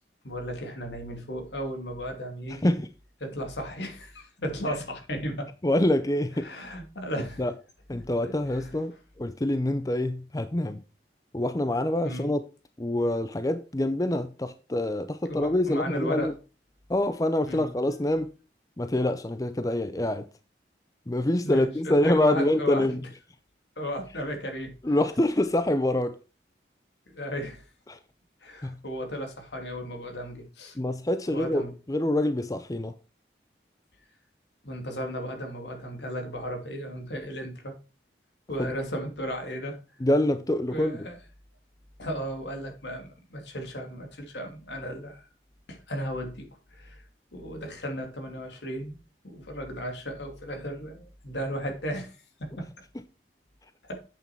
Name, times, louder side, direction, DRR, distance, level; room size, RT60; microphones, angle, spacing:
voice 1, 0.2-2.8 3.2-5.5 6.4-7.4 8.2-8.7 12.0-12.3 15.2-16.3 17.5-17.7 21.4-22.9 23.8-24.7 27.1-27.6 28.4-30.8 31.3-31.7 34.6-37.7 38.5-39.8 40.7-41.2 42.0-45.2 45.7-47.0 47.3-49.0 49.2-52.7 53.8-54.0, equal, 80° left, 2.8 m, -35 dB
voice 2, 5.6-6.5 7.4-7.5 7.9-10.8 11.3-12.4 12.8-16.3 16.9-18.3 18.8-20.3 21.1-23.0 24.8-26.2 27.9-28.0 28.6-28.8 30.8-32.9 38.6-38.7 40.0-41.0, left 1 dB, 20° left, 0.5 m, -26 dB
8.4 x 7.1 x 4.5 m
head